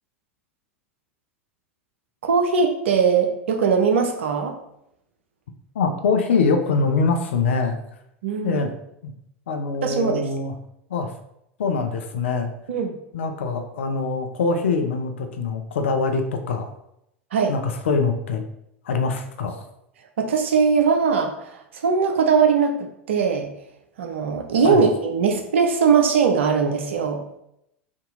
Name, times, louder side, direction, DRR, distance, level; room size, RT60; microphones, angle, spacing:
voice 1, 2.2-4.5 8.2-8.7 9.8-10.3 12.7-12.9 17.3-17.5 20.2-23.5 24.0-27.2, right 5 dB, 70° right, 4 dB, 0.6 m, -20 dB
voice 2, 5.7-7.8 8.4-8.7 9.0-9.1 9.5-10.5 10.9-11.1 11.6-12.5 13.1-16.7 17.5-18.4 18.8-19.6 24.6-24.8, left 4 dB, 70° left, 5 dB, 0.6 m, -23 dB
3.6 x 2.8 x 3.8 m, 0.79 s
figure-of-eight pair, 80°, 7 cm